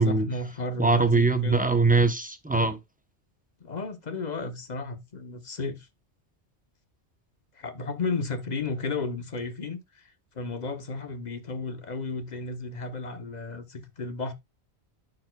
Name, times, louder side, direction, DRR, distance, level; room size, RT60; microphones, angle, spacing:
voice 1, 0.0-1.7 3.6-5.9 7.5-14.3, left 3 dB, 40° left, 0.9 m, -33 dB
voice 2, 0.8-2.8, right 3 dB, 10° right, 0.6 m, -22 dB
12.0 x 4.6 x 2.2 m
omnidirectional pair, 1.2 m